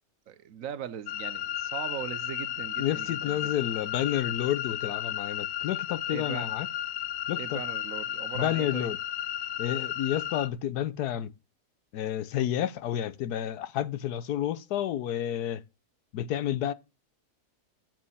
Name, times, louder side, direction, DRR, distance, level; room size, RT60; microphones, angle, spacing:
voice 1, 0.3-3.5 6.1-6.5 7.4-8.9, right 10 dB, 65° right, 1.0 m, -39 dB
sound 1, 1.1-10.5, left 12 dB, 65° left, 1.0 m, -34 dB
voice 2, 2.8-6.7 7.3-7.6 8.3-9.0 9.6-11.3 11.9-15.6 16.1-16.7, left 11 dB, 85° left, 1.3 m, -30 dB
7.6 x 7.4 x 5.6 m
omnidirectional pair, 1.6 m